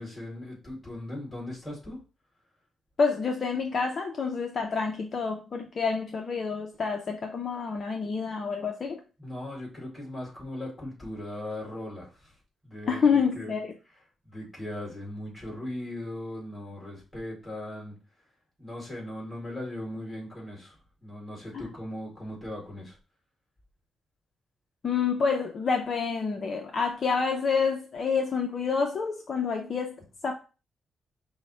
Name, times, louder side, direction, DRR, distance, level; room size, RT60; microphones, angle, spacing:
voice 1, 0.0-2.0 9.2-13.5 14.2-18.3 18.6-23.0, left 1 dB, 5° left, -4 dB, 2.4 m, -39 dB
voice 2, 3.0-9.0 12.9-13.7 24.8-30.3, left 5 dB, 40° left, 3 dB, 0.5 m, -28 dB
5.4 x 2.1 x 4.3 m, 0.34 s
cardioid pair, 140°, 0 cm